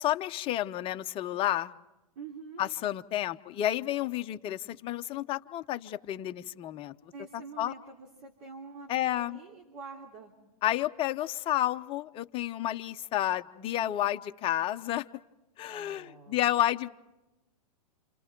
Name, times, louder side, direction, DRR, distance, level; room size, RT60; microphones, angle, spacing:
voice 1, 0.0-1.7 2.6-6.9 7.6-7.7 8.9-9.4 10.6-15.1 15.6-16.9, left 13 dB, 25° left, 9 dB, 0.8 m, -30 dB
voice 2, 2.1-2.7 7.1-10.3 15.6-16.6, right 4 dB, 60° right, 0 dB, 3.4 m, -46 dB
28.5 x 28.0 x 4.6 m, 0.96 s
hypercardioid pair, 130°, 20 cm